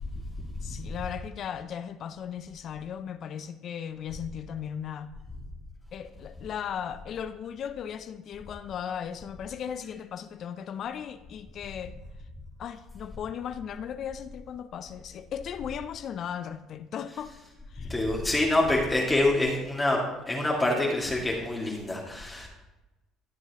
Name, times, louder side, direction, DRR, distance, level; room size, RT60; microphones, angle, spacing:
voice 1, 0.0-0.7 17.8-22.5, left 1 dB, 15° left, -3 dB, 2.0 m, -27 dB
voice 2, 0.6-5.1 5.9-11.9 12.6-17.4 17.7-17.9, left 8 dB, 55° left, 11 dB, 0.5 m, -37 dB
13.5 x 7.3 x 2.9 m, 1.0 s
hypercardioid pair, 70°, 0 cm